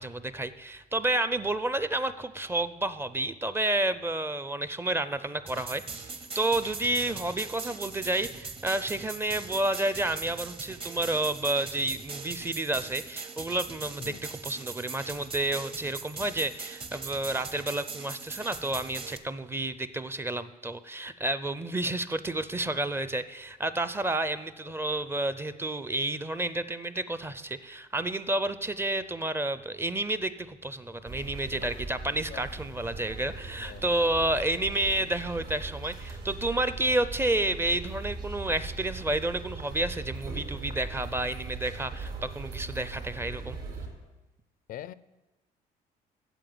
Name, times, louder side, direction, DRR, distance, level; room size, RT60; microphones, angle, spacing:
voice 1, 0.0-43.6, right 1 dB, 15° right, 13 dB, 0.5 m, -30 dB
sound 1, 5.5-19.2, right 4 dB, 30° right, 0.9 m, -41 dB
voice 2, 7.0-7.2 14.0-14.2 32.3-32.5 32.8-32.9 33.6-33.8 44.7-44.9, left 11 dB, 60° left, 17 dB, 0.4 m, -43 dB
sound 2, 31.1-43.9, right 4 dB, 65° right, 3.9 m, -40 dB
9.0 x 7.5 x 7.8 m, 1.1 s
cardioid pair, 110°, 17 cm